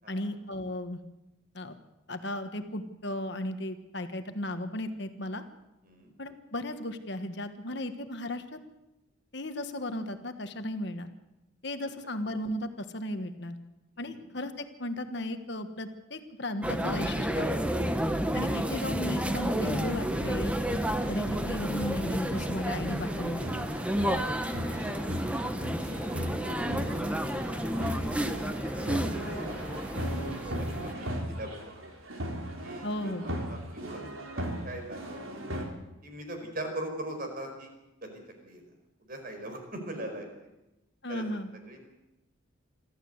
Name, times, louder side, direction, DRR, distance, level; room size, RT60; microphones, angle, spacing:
voice 1, 0.1-1.0 1.5-1.8 2.1-5.4 6.2-8.6 9.3-11.1 11.6-13.5 14.0-17.6 18.3-20.5 21.1-23.5 32.8-33.2 41.0-41.5, left 1 dB, 55° left, 8 dB, 1.4 m, -35 dB
voice 2, 13.9-14.3 26.4-27.5 27.9-29.9 30.4-31.9 32.6-34.0 34.3-35.4 36.0-37.7 38.0-38.6 39.0-40.5 41.1-41.2 41.7-41.8, right 1 dB, 45° right, 4 dB, 5.0 m, -42 dB
sound 1, 16.6-30.9, equal, 5° right, 1.0 m, -31 dB
sound 2, 18.4-35.7, equal, 85° right, 4.1 m, -38 dB
24.0 x 14.5 x 8.0 m, 0.96 s
head